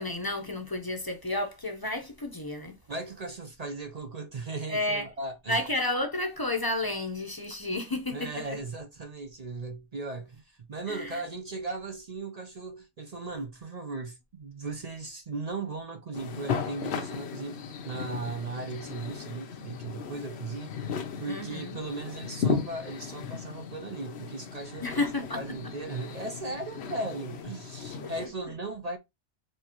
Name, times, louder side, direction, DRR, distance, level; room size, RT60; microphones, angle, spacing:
voice 1, 0.0-2.8 4.7-5.1 5.5-8.3 10.9-11.2 21.3-21.8 24.8-25.4 28.0-28.1, left 2 dB, 25° left, 0.6 m, -31 dB
voice 2, 2.9-5.6 8.1-20.9 21.2-25.0 25.3-29.0, right 3 dB, 45° right, 0.5 m, -37 dB
sound 1, 16.1-28.3, left 6 dB, 60° left, 0.9 m, -36 dB
4.5 x 3.4 x 2.9 m
omnidirectional pair, 1.3 m